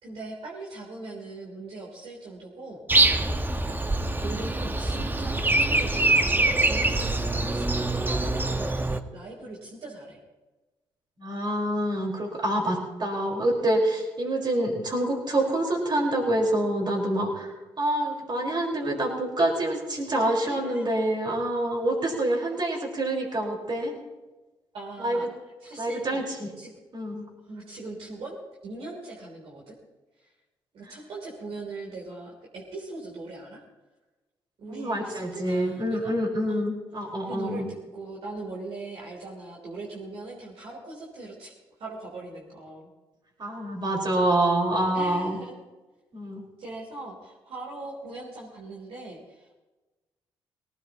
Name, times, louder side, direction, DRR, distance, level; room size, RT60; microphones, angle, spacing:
voice 1, 0.0-2.8 4.2-6.1 6.4-10.2 12.6-12.7 20.5-21.0 24.7-25.3 25.6-26.2 26.6-26.7 27.4-29.8 30.2-30.3 30.7-33.6 34.6-36.1 36.5-36.6 37.3-41.5 41.8-42.9 44.9-45.5 46.6-49.6, right 2 dB, 70° right, -4 dB, 3.4 m, -40 dB
Breathing, 2.9-9.0, right 2 dB, 20° right, 1.0 m, -24 dB
voice 2, 11.2-17.5 17.8-23.9 25.0-25.2 25.8-26.5 26.9-27.3 34.7-37.7 43.4-45.4 46.1-46.4, right 1 dB, 45° right, 0 dB, 4.7 m, -26 dB
19.5 x 17.5 x 3.0 m, 1.1 s
supercardioid pair, 50°, 10 cm